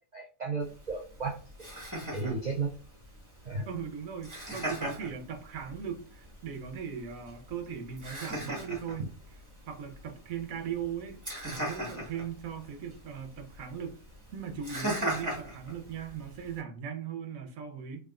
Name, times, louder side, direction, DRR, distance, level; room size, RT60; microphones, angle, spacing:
voice 1, 0.1-1.7 2.1-2.7 3.5-3.7, right 4 dB, 60° right, 0.4 m, -34 dB
Laughter, 0.6-16.6, right 1 dB, 15° right, 1.4 m, -40 dB
voice 2, 3.7-9.0 9.7-11.2 11.5-14.0 14.3-18.0, right 7 dB, 80° right, 1.2 m, -38 dB
3.5 x 3.4 x 2.4 m
omnidirectional pair, 1.4 m